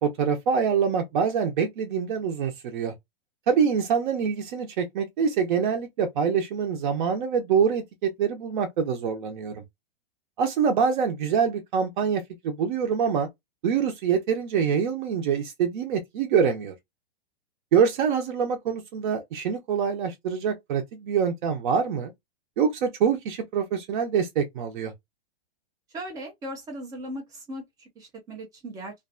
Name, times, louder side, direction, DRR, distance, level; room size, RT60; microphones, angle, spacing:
voice 1, 0.0-2.9 3.5-9.6 10.4-13.3 13.6-16.7 17.7-22.1 22.6-24.9, right 6 dB, 50° right, 0.7 m, -25 dB
voice 2, 25.9-28.9, right 1 dB, 10° right, 0.4 m, -38 dB
2.6 x 2.2 x 2.4 m
hypercardioid pair, 155°, 31 cm